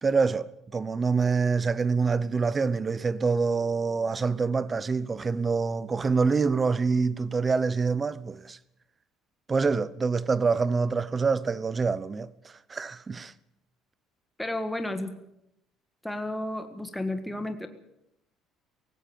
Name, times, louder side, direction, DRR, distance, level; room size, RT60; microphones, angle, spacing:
voice 1, 0.0-8.6 9.5-13.3, right 4 dB, 20° right, 0.7 m, -26 dB
voice 2, 14.4-15.1 16.0-17.7, left 1 dB, 5° left, 1.7 m, -32 dB
18.0 x 16.5 x 8.7 m
cardioid pair, 150°, 0 cm